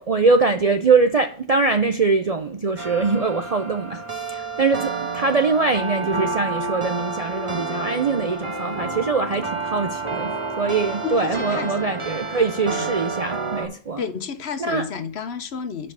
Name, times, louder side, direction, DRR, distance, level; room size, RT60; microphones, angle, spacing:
voice 1, 0.0-10.3 10.6-14.0 14.6-14.9, right 4 dB, 45° right, 0.5 m, -22 dB
sound 1, 2.8-13.7, right 3 dB, 25° right, 1.2 m, -29 dB
voice 2, 11.0-11.9 12.7-12.9 14.0-15.9, left 6 dB, 60° left, 1.0 m, -31 dB
5.4 x 5.2 x 6.6 m
omnidirectional pair, 1.3 m